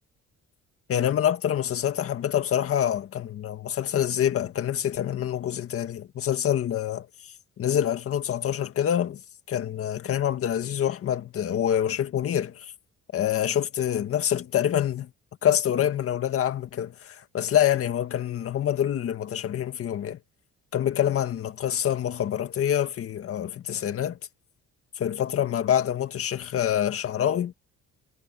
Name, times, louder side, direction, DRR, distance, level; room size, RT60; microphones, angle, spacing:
voice 1, 0.9-9.2 9.5-12.7 13.1-15.1 15.4-20.2 20.7-24.2 25.0-27.5, left 10 dB, 50° left, 1.9 m, -26 dB
cardioid pair, 160°, 30 cm